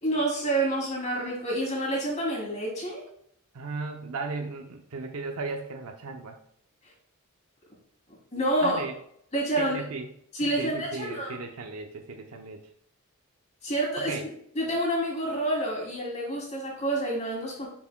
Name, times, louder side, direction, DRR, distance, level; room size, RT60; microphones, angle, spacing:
voice 1, 0.0-3.0 8.3-8.8 9.3-9.8 10.3-11.4 13.6-14.1 14.5-17.7, right 1 dB, 30° left, -3 dB, 2.8 m, -28 dB
voice 2, 3.5-6.4 8.6-8.9 9.6-10.1 10.4-12.7 14.0-14.2, right 3 dB, 75° right, 4 dB, 0.7 m, -36 dB
8.3 x 5.9 x 2.2 m, 0.70 s
head